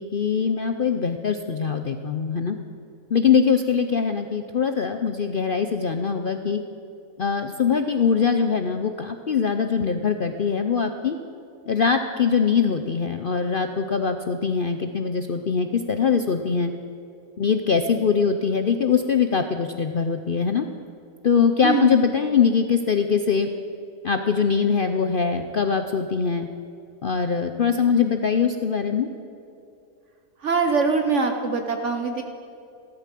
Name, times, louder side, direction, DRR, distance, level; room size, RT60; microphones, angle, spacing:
voice 1, 0.0-2.6 3.1-6.6 7.2-11.2 11.7-16.7 17.4-20.7 21.2-23.5 24.0-26.5 27.0-29.1, left 6 dB, 55° left, 7 dB, 0.6 m, -22 dB
voice 2, 30.4-32.2, right 4 dB, 55° right, 5 dB, 1.2 m, -23 dB
15.0 x 13.0 x 7.5 m, 2.6 s
omnidirectional pair, 1.6 m